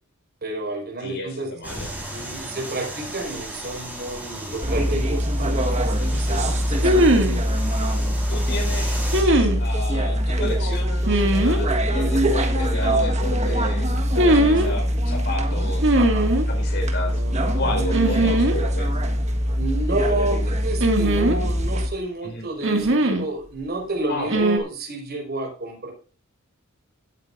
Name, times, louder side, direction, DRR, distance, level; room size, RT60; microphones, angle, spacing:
voice 1, 0.4-1.7 2.1-5.9 6.1-7.4 14.1-14.4 15.9-16.3 17.0-18.4 19.5-25.9, right 2 dB, 50° right, 0 dB, 4.9 m, -31 dB
voice 2, 1.0-1.9 6.0-6.2 8.3-15.9 16.5-17.2 17.6-18.9 22.2-22.4 24.1-24.5, left 1 dB, 60° left, 2 dB, 4.5 m, -32 dB
sound 1, 1.6-9.2, right 1 dB, 10° right, 4.2 m, -35 dB
sound 2, 4.6-21.9, equal, 35° right, 1.5 m, -23 dB
sound 3, 4.9-5.0 6.8-7.4 9.1-9.6 11.1-11.6 14.1-14.7 15.8-16.5 17.9-18.6 18.8-18.9 20.8-21.7 22.6-23.3 24.3-24.6, right 1 dB, 65° right, 2.0 m, -19 dB
16.5 x 8.8 x 2.6 m, 0.37 s
head